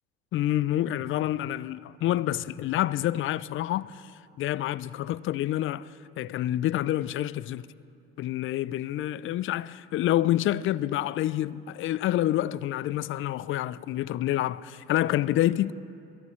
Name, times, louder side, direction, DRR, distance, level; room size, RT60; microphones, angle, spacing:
voice 1, 0.3-4.1 4.4-7.7 8.2-15.7, left 13 dB, 40° left, 0.4 m, -28 dB
22.5 x 13.0 x 3.2 m
hypercardioid pair, 75°, 32 cm